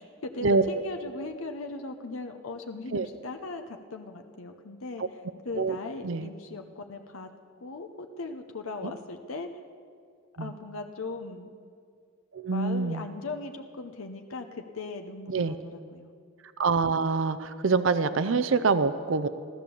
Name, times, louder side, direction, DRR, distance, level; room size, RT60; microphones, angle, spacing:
voice 1, 0.0-5.0 5.4-7.3 7.6-9.6 10.4-11.5 12.5-16.1, left 3 dB, 85° left, 6 dB, 0.9 m, -38 dB
voice 2, 12.3-13.1 15.3-15.5 16.6-19.3, right 4 dB, 65° right, 12 dB, 0.5 m, -25 dB
15.0 x 13.0 x 7.0 m, 2.2 s
head